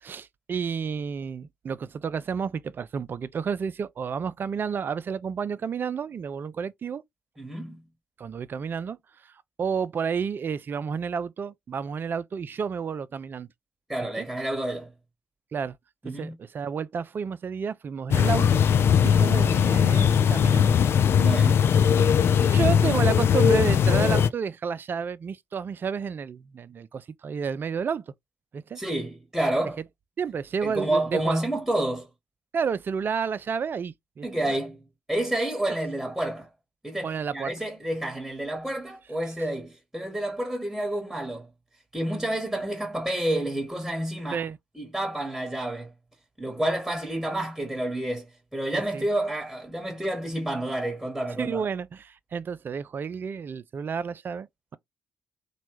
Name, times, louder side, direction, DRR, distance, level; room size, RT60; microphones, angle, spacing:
voice 1, 0.0-7.0 8.2-9.0 9.2-9.3 9.6-13.5 14.2-14.3 15.5-15.8 16.1-18.6 19.0-20.7 21.4-21.5 22.3-28.0 28.5-28.8 30.2-31.4 32.5-34.5 37.0-37.5 44.3-44.6 48.7-49.1 51.4-54.5, right 6 dB, 45° right, 0.4 m, -31 dB
voice 2, 7.4-7.8 13.9-14.9 16.0-16.3 21.1-21.6 28.7-29.8 30.6-32.1 34.2-34.8 35.1-36.5 36.8-41.5 41.9-44.4 44.7-45.9 46.4-48.3 48.5-51.6, right 1 dB, ahead, 1.2 m, -29 dB
sound 1, 18.1-24.3, left 7 dB, 55° left, 0.4 m, -20 dB
3.0 x 2.3 x 3.0 m
hypercardioid pair, 40°, 5 cm